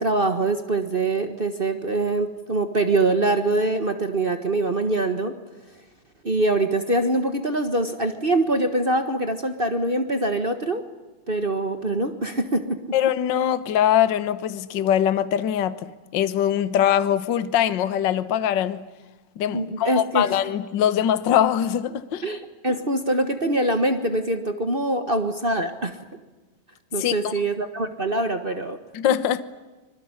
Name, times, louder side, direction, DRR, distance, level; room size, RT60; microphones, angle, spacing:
voice 1, 0.0-5.3 6.2-10.8 11.3-12.8 19.5-20.3 22.2-26.0 26.9-28.8, right 2 dB, 55° right, 0.5 m, -24 dB
voice 2, 12.9-18.8 19.4-22.3 27.0-27.3 28.9-29.4, left 10 dB, 85° left, 1.0 m, -22 dB
25.5 x 22.5 x 9.9 m
omnidirectional pair, 3.7 m